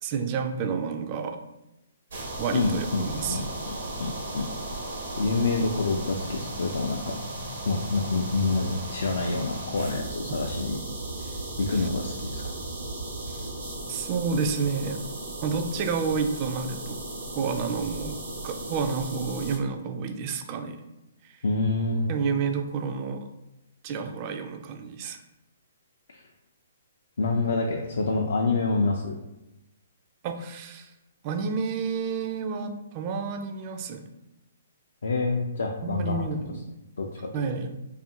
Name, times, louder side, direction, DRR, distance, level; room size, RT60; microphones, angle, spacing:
voice 1, 0.0-1.4 2.4-3.5 11.8-11.9 13.9-15.0 15.4-17.0 17.3-20.8 21.2-21.3 22.1-23.3 23.8-25.2 30.2-30.9 31.2-34.0 35.8-36.7 37.3-37.8, right 5 dB, 35° right, 6 dB, 0.3 m, -30 dB
sound 1, 2.1-19.6, right 1 dB, 75° right, 0.8 m, -36 dB
voice 2, 2.5-4.5 5.2-7.2 7.6-10.8 11.2-12.4 21.4-22.1 26.1-26.2 27.2-29.2 35.0-36.2 37.0-37.3, left 3 dB, 75° left, 0 dB, 0.3 m, -27 dB
2.7 x 2.4 x 2.7 m, 0.92 s
hypercardioid pair, 135°, 0 cm